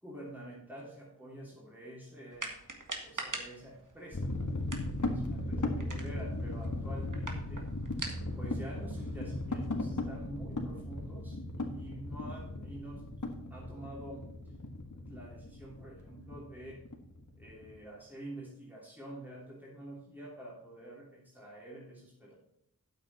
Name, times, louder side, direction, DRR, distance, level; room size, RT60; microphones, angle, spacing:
voice 1, 0.0-2.5 3.0-4.3 5.0-7.7 8.3-13.0 13.5-14.3 14.9-16.8 17.4-22.3, right 1 dB, 5° right, -5 dB, 2.9 m, -47 dB
sound 1, 2.3-9.7, right 3 dB, 65° right, 1.7 m, -45 dB
sound 2, 4.1-17.7, left 2 dB, 60° left, 1.7 m, -37 dB
9.2 x 7.7 x 4.1 m, 0.78 s
wide cardioid pair, 40°, 33 cm